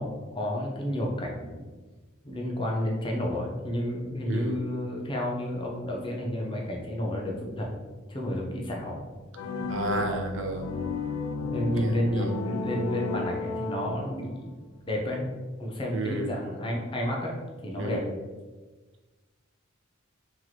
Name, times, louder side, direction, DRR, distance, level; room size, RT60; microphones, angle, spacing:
voice 1, 0.0-1.6 2.2-7.7 8.1-9.0 11.5-15.2 15.6-17.3 17.6-18.0, equal, 25° left, -2 dB, 0.6 m, -31 dB
voice 2, 4.3-4.6 9.7-10.7 11.8-12.3 15.9-16.3 17.8-18.1, right 2 dB, 60° right, 4 dB, 0.5 m, -32 dB
sound 1, 9.3-14.3, left 3 dB, 90° left, 0.4 m, -33 dB
3.0 x 3.0 x 4.0 m, 1.3 s
head